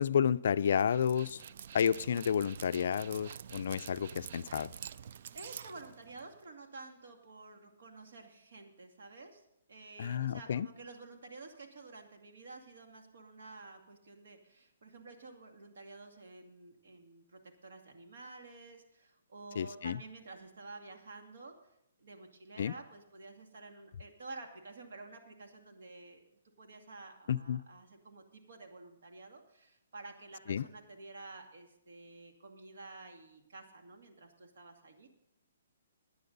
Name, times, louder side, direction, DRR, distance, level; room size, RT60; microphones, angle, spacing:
voice 1, 0.0-1.4 1.7-4.7 10.0-10.7 19.6-20.0 22.6-22.7 27.3-27.6 30.5-30.7, left 8 dB, 55° left, 14 dB, 0.4 m, -31 dB
Dog, 0.7-6.4, right 8 dB, 45° right, 0.3 m, -48 dB
voice 2, 5.3-21.5 22.0-35.1, right 3 dB, 65° right, 3 dB, 2.2 m, -51 dB
16.5 x 9.9 x 4.0 m, 0.81 s
hypercardioid pair, 170°, 0 cm